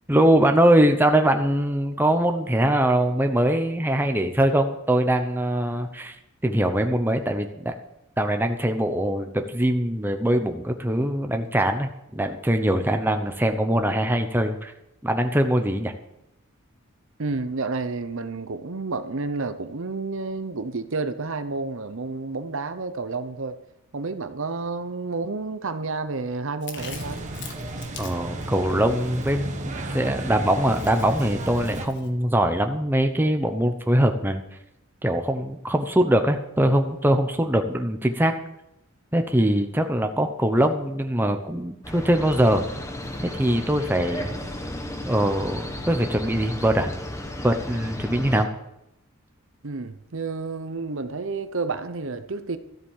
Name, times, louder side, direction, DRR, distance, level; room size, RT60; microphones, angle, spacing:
voice 1, 0.1-6.2 6.4-7.7 8.2-14.7 15.0-15.9 28.0-34.4 35.0-38.3 39.1-42.7 43.2-44.3 45.1-46.9 47.4-48.5, right 1 dB, 10° right, 0.8 m, -22 dB
voice 2, 17.2-23.6 23.9-27.2 49.6-52.6, right 3 dB, 60° right, 0.8 m, -30 dB
Chewing mastication, 26.6-32.1, left 6 dB, 55° left, 1.6 m, -45 dB
sound 1, 26.8-31.8, right 1 dB, 35° right, 1.3 m, -33 dB
sound 2, 41.8-48.4, left 1 dB, 15° left, 1.2 m, -34 dB
13.0 x 8.0 x 7.3 m
head